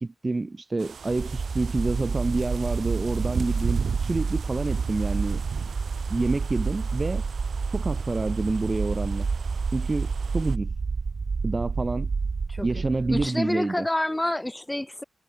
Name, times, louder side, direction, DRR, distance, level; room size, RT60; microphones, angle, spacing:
voice 1, 0.0-5.4 6.1-7.2 7.7-9.3 9.7-10.7 11.4-12.1 12.6-13.9, right 3 dB, 30° right, 0.7 m, -28 dB
sound 1, 0.8-10.6, right 6 dB, 70° right, 4.7 m, -36 dB
sound 2, 1.2-13.3, right 4 dB, 50° right, 2.7 m, -29 dB
voice 2, 12.5-12.8 13.1-15.0, left 1 dB, 15° left, 3.5 m, -28 dB
cardioid pair, 70°, 0 cm